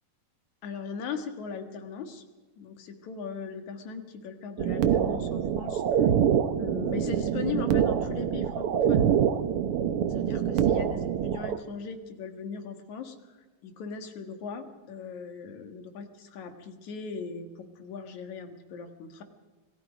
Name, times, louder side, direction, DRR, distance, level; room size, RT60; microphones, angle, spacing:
voice 1, 0.6-2.2 2.6-6.1 6.6-9.1 10.1-19.2, left 5 dB, 75° left, 7 dB, 3.1 m, -39 dB
sound 1, 4.6-11.6, right 9 dB, 60° right, 1.6 m, -25 dB
27.0 x 19.0 x 5.1 m, 1.3 s
omnidirectional pair, 3.3 m